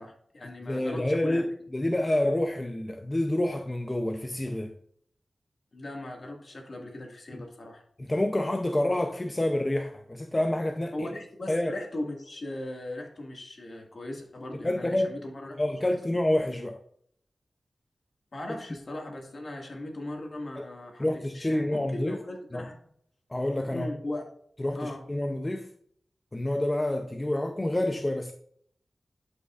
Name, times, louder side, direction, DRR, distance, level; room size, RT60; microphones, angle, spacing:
voice 1, 0.0-1.4 5.7-7.8 10.9-15.6 15.9-16.0 18.3-21.1 21.3-22.8 23.7-24.2 24.8-25.0, left 1 dB, 55° left, 1.9 m, -38 dB
voice 2, 0.6-4.7 7.3-7.4 8.0-11.1 11.5-11.8 14.6-15.1 15.6-16.8 18.5-18.6 20.6-20.7 21.0-22.2 22.5-22.7 23.3-23.9 24.6-25.7 26.3-28.3, left 1 dB, 25° left, 0.6 m, -28 dB
11.0 x 5.4 x 2.5 m
wide cardioid pair, 60°, 0 cm